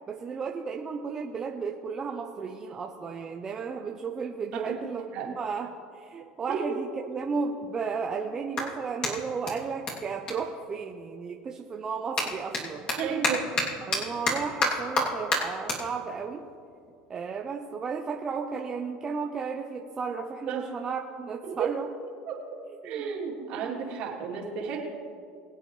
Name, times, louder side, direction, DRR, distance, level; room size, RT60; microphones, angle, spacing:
voice 1, 0.1-5.1 5.4-5.7 5.9-12.9 13.8-16.4 17.1-21.9 22.8-23.0 23.4-23.8, right 5 dB, 25° right, 2 dB, 0.8 m, -34 dB
voice 2, 4.5-5.3 6.5-6.8 13.0-13.5 13.9-14.0 20.5-20.7 21.4-21.7 22.3-22.6 22.8-24.8, right 6 dB, 60° right, -3 dB, 3.1 m, -33 dB
Clapping, 6.4-6.5 7.2-11.3 11.6-18.2, left 2 dB, 40° left, 3.0 m, -32 dB
23.0 x 8.2 x 3.3 m, 2.4 s
supercardioid pair, 120°, 2 cm